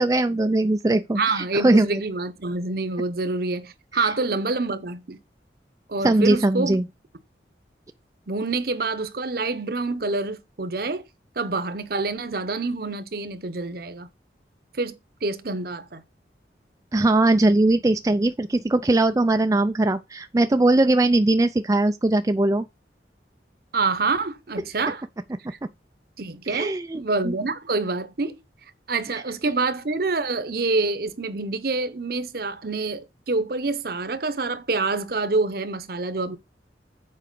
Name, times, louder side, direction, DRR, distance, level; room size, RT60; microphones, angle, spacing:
voice 1, 0.0-2.0 6.0-6.9 16.9-22.6 26.5-27.3 29.1-29.2, right 2 dB, 20° right, 0.4 m, -20 dB
voice 2, 1.1-5.2 5.9-6.8 8.3-11.0 11.4-14.1 14.7-14.9 15.2-16.0 23.7-25.0 25.5-25.6 26.2-28.4 28.9-36.4, right 3 dB, 55° right, 0.9 m, -27 dB
7.5 x 4.8 x 6.7 m
head